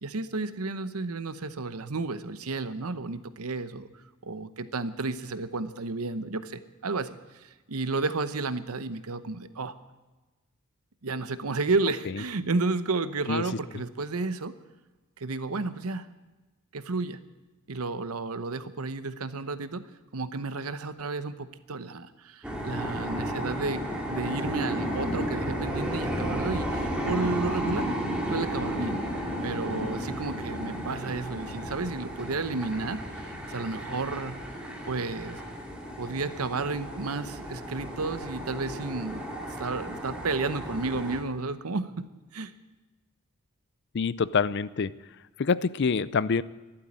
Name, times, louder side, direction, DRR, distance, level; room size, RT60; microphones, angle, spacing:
voice 1, 0.0-3.9 4.2-7.1 7.4-9.7 11.0-14.5 15.2-16.1 16.7-17.2 17.7-19.8 20.1-27.9 28.3-29.0 29.4-34.4 34.8-35.4 36.0-39.3 39.6-42.1 42.3-42.5, right 3 dB, 85° right, 12 dB, 0.9 m, -32 dB
sound 1, 22.4-41.2, equal, 5° right, 2.3 m, -33 dB
voice 2, 43.9-44.9 45.4-46.4, left 5 dB, 50° left, 18 dB, 0.5 m, -26 dB
13.0 x 11.5 x 8.7 m, 1.2 s
head